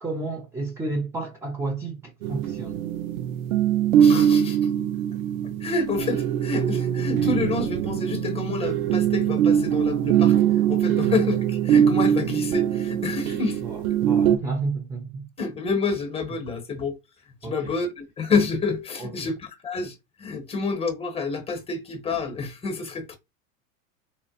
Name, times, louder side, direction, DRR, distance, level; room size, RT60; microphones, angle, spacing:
voice 1, 0.0-2.9 10.9-11.0 13.6-15.3 17.4-17.8 19.0-19.3, right 3 dB, 5° right, 0.3 m, -31 dB
sound 1, 2.2-14.4, right 9 dB, 75° right, 0.6 m, -22 dB
voice 2, 4.0-4.7 5.6-13.6 15.4-17.0 17.4-23.2, left 4 dB, 15° left, 0.9 m, -28 dB
3.9 x 2.0 x 2.7 m
hypercardioid pair, 100°, 42 cm